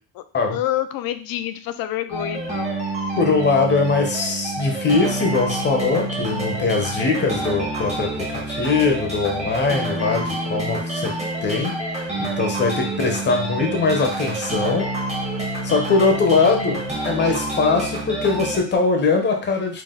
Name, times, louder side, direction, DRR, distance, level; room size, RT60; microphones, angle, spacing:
voice 1, 0.5-2.7, left 12 dB, 60° left, 10 dB, 0.5 m, -27 dB
sound 1, 2.1-18.6, right 2 dB, 15° right, 1.1 m, -27 dB
voice 2, 3.2-11.2 11.4-14.9 15.6-19.8, left 4 dB, 30° left, 3 dB, 0.8 m, -21 dB
4.0 x 2.4 x 3.7 m, 0.41 s
cardioid pair, 155°, 39 cm